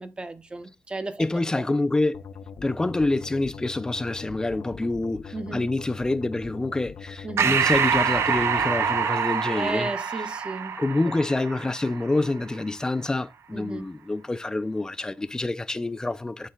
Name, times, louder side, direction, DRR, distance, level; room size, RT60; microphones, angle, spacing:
voice 1, 0.0-1.3 1.5-1.6 5.3-5.7 7.2-7.6 9.5-10.8 13.5-13.9, right 2 dB, 20° right, 0.8 m, -34 dB
voice 2, 1.2-2.3 2.6-9.9 10.8-16.5, left 2 dB, 15° left, 0.4 m, -27 dB
sound 1, 2.1-9.0, left 6 dB, 90° left, 0.7 m, -41 dB
Breathing, 7.4-12.3, right 7 dB, 70° right, 0.5 m, -25 dB
11.5 x 4.0 x 2.3 m
wide cardioid pair, 135°, 5 cm